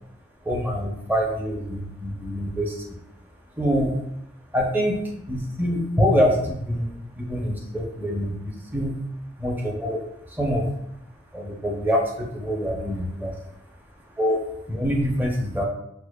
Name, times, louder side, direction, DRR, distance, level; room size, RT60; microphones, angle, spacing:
voice 1, 0.4-2.8 3.6-3.9 4.5-5.0 5.3-8.9 9.4-10.0 10.3-10.7 11.3-13.3 14.2-14.4 14.7-15.6, equal, 10° right, -1 dB, 0.5 m, -25 dB
4.7 x 2.2 x 2.2 m, 0.79 s
head